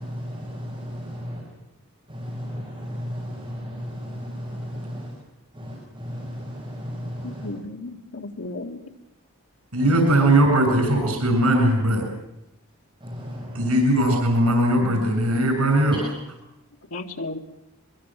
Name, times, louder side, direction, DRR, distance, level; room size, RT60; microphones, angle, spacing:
voice 1, 0.0-1.4 2.1-5.1 5.5-7.5 9.8-10.0 13.0-13.8, equal, 25° right, -4 dB, 5.6 m, -34 dB
voice 2, 7.2-8.8 16.9-17.4, left 2 dB, 80° left, 3 dB, 2.2 m, -34 dB
voice 3, 9.7-12.0 13.5-16.0, right 1 dB, 85° right, 4 dB, 7.2 m, -19 dB
23.5 x 23.0 x 7.6 m, 0.90 s
head